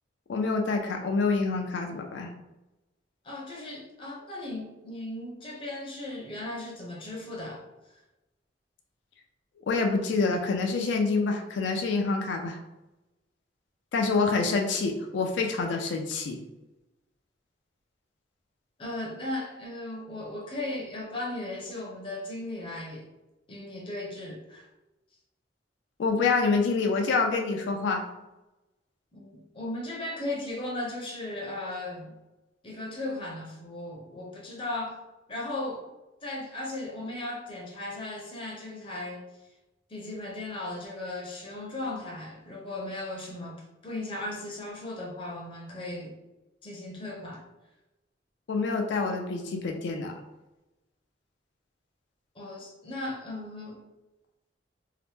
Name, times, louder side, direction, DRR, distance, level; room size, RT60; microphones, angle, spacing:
voice 1, 0.3-2.3 9.7-12.6 13.9-16.4 26.0-28.0 48.5-50.2, left 4 dB, 80° left, 3 dB, 0.4 m, -27 dB
voice 2, 3.2-7.6 18.8-23.1 23.5-24.7 29.1-32.1 32.6-35.0 35.3-35.9 36.2-39.2 39.9-46.2 46.6-47.4 52.4-53.8, left 2 dB, 30° left, -2 dB, 0.6 m, -36 dB
2.8 x 2.0 x 3.3 m, 0.99 s
head